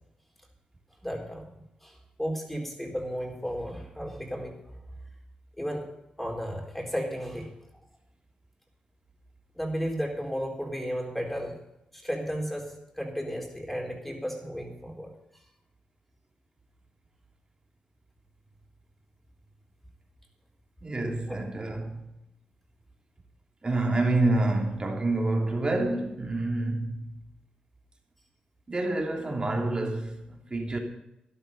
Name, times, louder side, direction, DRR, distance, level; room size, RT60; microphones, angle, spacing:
voice 1, 1.0-4.8 5.6-5.9 6.2-7.5 9.6-11.6 11.9-15.1 21.3-21.4, equal, 5° left, 4.1 m, -34 dB
voice 2, 20.8-22.0 23.6-27.1 28.7-30.8, right 2 dB, 30° right, 3.2 m, -28 dB
12.5 x 12.0 x 5.4 m
cardioid pair, 75°, 3 cm